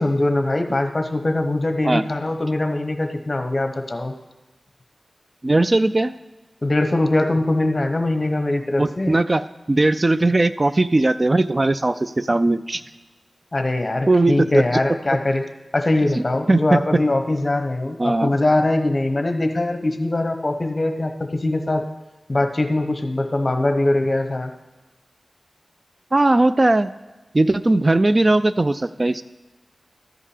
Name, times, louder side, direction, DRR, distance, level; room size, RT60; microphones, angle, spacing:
voice 1, 0.0-4.1 6.6-9.1 13.5-15.4 15.7-21.8 22.3-24.5, left 2 dB, 40° left, 6 dB, 1.1 m, -22 dB
voice 2, 5.4-6.1 8.8-12.8 14.1-14.6 16.2-16.3 16.5-16.8 18.0-18.3 26.1-26.9 27.3-29.2, right 2 dB, 40° right, 14 dB, 0.3 m, -18 dB
13.5 x 5.5 x 5.0 m, 1.2 s
cardioid pair, 45°, 0 cm